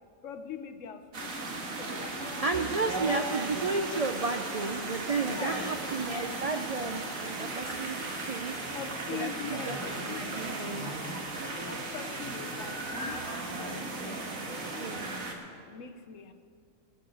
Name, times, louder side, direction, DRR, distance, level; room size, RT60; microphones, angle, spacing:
voice 1, 0.2-2.7 5.2-5.7 8.7-11.0 11.6-15.2 15.7-16.3, left 7 dB, 70° left, 8 dB, 1.2 m, -43 dB
sound 1, 1.1-15.3, right 2 dB, 80° right, 2.0 m, -36 dB
voice 2, 2.4-8.0 8.2-8.6 9.1-9.8 10.1-10.9 12.7-12.8 14.8-15.1, right 3 dB, 55° right, 6 dB, 0.4 m, -33 dB
19.5 x 8.2 x 6.2 m, 2.2 s
omnidirectional pair, 1.4 m